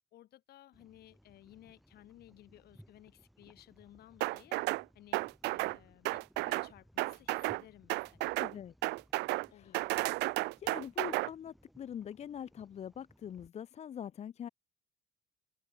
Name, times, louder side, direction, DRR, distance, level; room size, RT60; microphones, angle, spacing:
voice 1, 0.1-4.6 4.9-8.4 9.5-9.9, left 14 dB, 70° left, 3.8 m, -58 dB
sound 1, 0.7-13.5, equal, ahead, 4.7 m, -63 dB
sound 2, 4.2-4.8 5.1-5.8 6.1-6.7 7.0-7.6 7.9-8.5 8.8-9.5 9.7-11.3, right 22 dB, 85° right, 0.5 m, -33 dB
voice 2, 8.4-8.7 9.5-9.8 10.6-14.5, left 9 dB, 40° left, 0.6 m, -43 dB
open air
cardioid pair, 110°, 17 cm